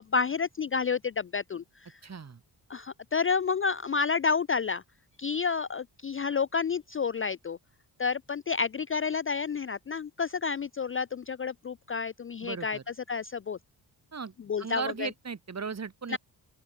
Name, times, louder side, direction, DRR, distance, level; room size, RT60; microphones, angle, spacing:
voice 1, 0.0-1.6 2.7-4.8 5.2-7.6 8.0-12.8 13.1-13.6 14.5-15.1 16.1-16.2, left 5 dB, 30° left, 0.4 m, -30 dB
voice 2, 2.0-2.4 12.4-12.8 14.1-14.3 14.6-16.2, right 5 dB, 35° right, 1.6 m, -36 dB
open air
cardioid pair, 75°, 44 cm